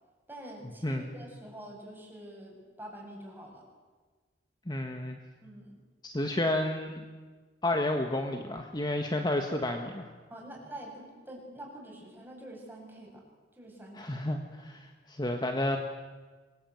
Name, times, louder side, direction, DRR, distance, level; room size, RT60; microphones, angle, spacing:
voice 1, 0.3-3.6 5.4-5.8 10.3-13.2 13.5-14.2, right 1 dB, 10° right, -1 dB, 7.4 m, -46 dB
voice 2, 4.7-5.2 6.0-7.0 7.6-10.1 13.9-15.8, left 1 dB, 25° left, 4 dB, 1.6 m, -31 dB
25.0 x 22.0 x 9.3 m, 1.4 s
head